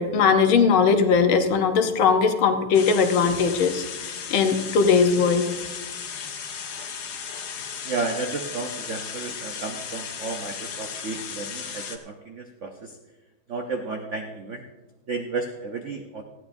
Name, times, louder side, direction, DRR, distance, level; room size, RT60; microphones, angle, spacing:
voice 1, 0.0-5.4, left 5 dB, 70° left, 7 dB, 1.7 m, -20 dB
sound 1, 2.7-12.0, left 6 dB, 55° left, 1.4 m, -35 dB
voice 2, 7.8-13.0 13.5-14.6 15.1-16.2, right 4 dB, 70° right, 4 dB, 0.6 m, -32 dB
19.0 x 14.0 x 2.6 m, 1.2 s
omnidirectional pair, 2.4 m